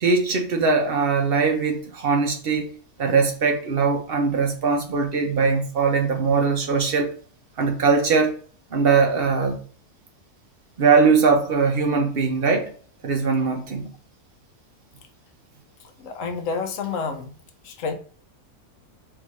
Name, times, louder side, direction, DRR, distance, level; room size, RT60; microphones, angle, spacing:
voice 1, 0.0-2.7 3.0-7.1 7.6-8.3 8.7-9.6 10.8-12.7 13.0-13.9, right 5 dB, 50° right, 0.8 m, -21 dB
voice 2, 16.0-17.3 17.6-17.9, left 5 dB, 65° left, 1.0 m, -29 dB
3.6 x 2.7 x 4.6 m
omnidirectional pair, 1.6 m